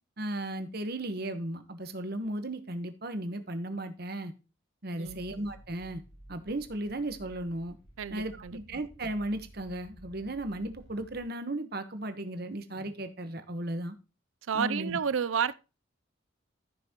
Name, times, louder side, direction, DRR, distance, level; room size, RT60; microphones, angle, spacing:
voice 1, 0.2-4.3 4.8-6.0 6.3-7.8 8.1-13.9 14.5-15.0, right 1 dB, 50° right, 1.2 m, -35 dB
sound 1, 5.0-11.3, equal, 75° left, 3.8 m, -53 dB
voice 2, 8.0-8.6 14.5-15.5, right 7 dB, 75° right, 0.5 m, -30 dB
14.5 x 6.0 x 3.0 m
head